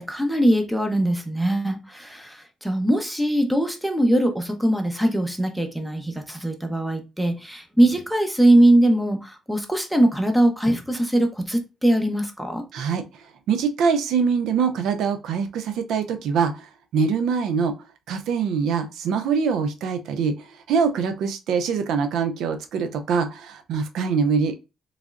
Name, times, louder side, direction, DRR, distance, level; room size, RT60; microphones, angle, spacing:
voice 1, 0.0-12.6, right 1 dB, 5° right, 0.8 m, -21 dB
voice 2, 12.7-13.0 13.5-17.8 18.1-24.6, right 6 dB, 80° right, 0.4 m, -24 dB
3.5 x 3.2 x 2.4 m
cardioid pair, 90°, 0 cm